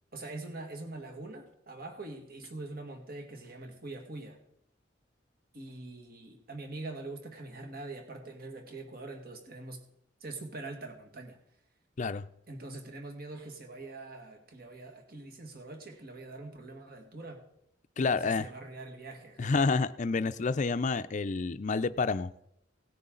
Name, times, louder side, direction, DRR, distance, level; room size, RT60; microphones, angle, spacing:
voice 1, 0.1-4.4 5.5-9.9 10.2-11.4 12.5-17.5 18.0-19.6, right 2 dB, 55° right, 4 dB, 1.9 m, -43 dB
voice 2, 18.0-18.5 19.4-22.3, left 4 dB, 40° left, 13 dB, 0.5 m, -29 dB
18.0 x 9.7 x 3.9 m, 0.78 s
head